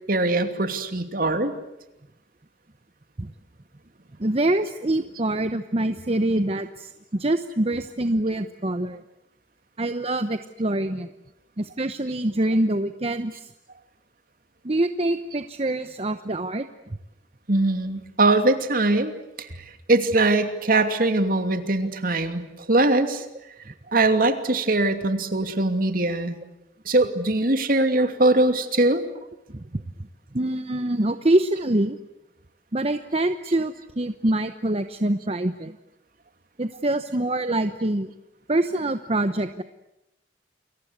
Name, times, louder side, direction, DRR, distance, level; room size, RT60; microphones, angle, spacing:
voice 1, 0.1-1.5 17.5-19.5 19.9-23.3 23.9-26.4 26.9-29.0, right 2 dB, 55° right, 7 dB, 2.7 m, -21 dB
voice 2, 4.2-9.0 9.8-11.1 11.6-13.5 14.6-16.7 23.7-23.8 29.5-29.8 30.3-32.0 32.7-35.8 36.6-38.1 38.5-39.6, right 1 dB, 35° right, 9 dB, 1.0 m, -25 dB
29.5 x 23.0 x 8.2 m, 0.91 s
head